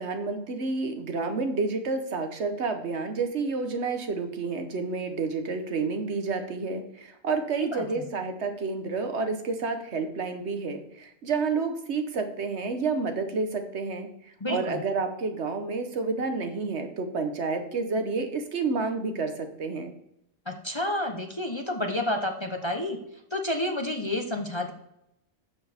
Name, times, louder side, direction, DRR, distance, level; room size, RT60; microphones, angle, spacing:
voice 1, 0.0-14.1 14.5-19.9, right 4 dB, 70° right, 7 dB, 1.3 m, -30 dB
voice 2, 14.4-14.8 20.5-23.0 23.3-24.7, left 1 dB, 25° left, 4 dB, 0.8 m, -30 dB
11.5 x 7.1 x 3.5 m, 0.82 s
omnidirectional pair, 1.2 m